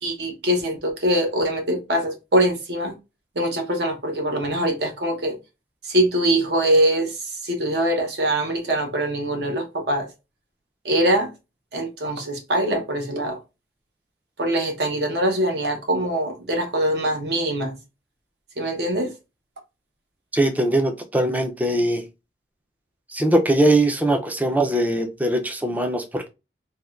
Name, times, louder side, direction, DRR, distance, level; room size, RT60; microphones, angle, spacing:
voice 1, 0.0-3.0 3.4-5.4 5.8-10.1 10.8-11.3 11.7-13.4 14.4-17.8 18.6-19.1, right 1 dB, 65° right, 0.8 m, -23 dB
voice 2, 20.3-22.1 23.1-26.3, right 1 dB, 10° right, 0.3 m, -21 dB
3.4 x 2.1 x 2.3 m
head